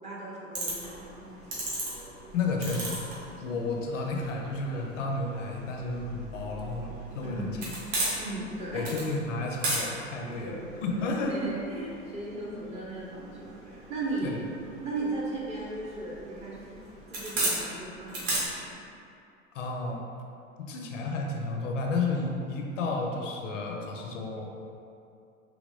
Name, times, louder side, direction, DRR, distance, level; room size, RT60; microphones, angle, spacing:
voice 1, 0.0-1.8 3.4-3.6 7.2-7.6 8.1-8.9 10.4-14.4 14.8-16.7 17.1-18.7, right 2 dB, 15° right, -6 dB, 0.6 m, -37 dB
sound 1, 0.5-18.4, right 2 dB, 40° right, 1.2 m, -37 dB
voice 2, 2.3-3.0 3.4-7.6 8.7-11.4 14.2-14.3 19.5-20.0 20.6-24.5, left 3 dB, 65° left, 1 dB, 0.5 m, -32 dB
3.4 x 3.0 x 2.6 m, 2.6 s
figure-of-eight pair, 85°, 40 cm